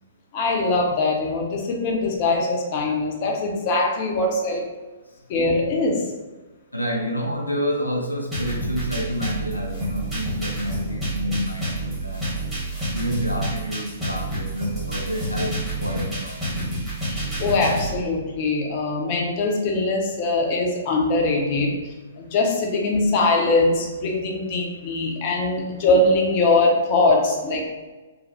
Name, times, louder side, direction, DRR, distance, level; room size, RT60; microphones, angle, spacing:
voice 1, 0.3-4.6 5.3-6.0 17.1-21.8 22.2-27.6, left 2 dB, 35° left, 0 dB, 0.6 m, -22 dB
voice 2, 6.7-12.4 12.9-16.7, equal, 85° left, 1 dB, 0.3 m, -29 dB
sound 1, 8.3-17.9, right 1 dB, 10° right, 1.1 m, -28 dB
3.1 x 2.0 x 2.8 m, 1.2 s
figure-of-eight pair, 115°, 0 cm